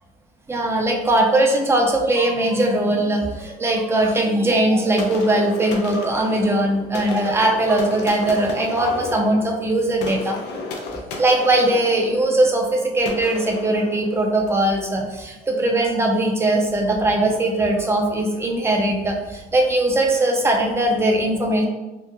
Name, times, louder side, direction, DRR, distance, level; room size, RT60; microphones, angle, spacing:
voice 1, 0.5-10.4 11.2-21.7, right 1 dB, 15° right, 1 dB, 0.4 m, -20 dB
sound 1, 5.0-14.6, left 3 dB, 80° left, 0.5 m, -33 dB
2.9 x 2.1 x 2.2 m, 1.1 s
cardioid pair, 110°, 17 cm